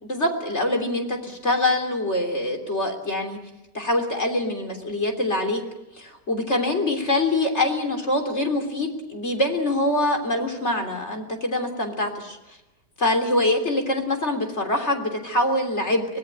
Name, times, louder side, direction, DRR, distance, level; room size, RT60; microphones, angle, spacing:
voice 1, 0.0-3.4 3.7-5.6 6.0-12.4 13.0-16.1, left 1 dB, 40° left, 3 dB, 3.6 m, -24 dB
24.5 x 19.0 x 8.9 m, 0.96 s
omnidirectional pair, 1.8 m